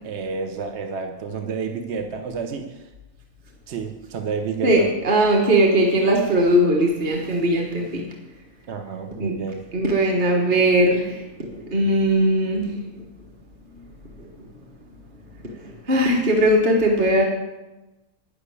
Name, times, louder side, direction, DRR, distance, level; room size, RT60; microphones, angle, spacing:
voice 1, 0.0-2.9 3.7-4.9 8.7-9.6, right 5 dB, 55° right, 5 dB, 1.0 m, -30 dB
voice 2, 4.6-8.0 9.2-9.4 9.7-12.7 14.2-14.3 15.6-17.2, right 1 dB, 35° right, 0 dB, 1.4 m, -19 dB
9.6 x 6.9 x 8.2 m, 1.1 s
omnidirectional pair, 1.5 m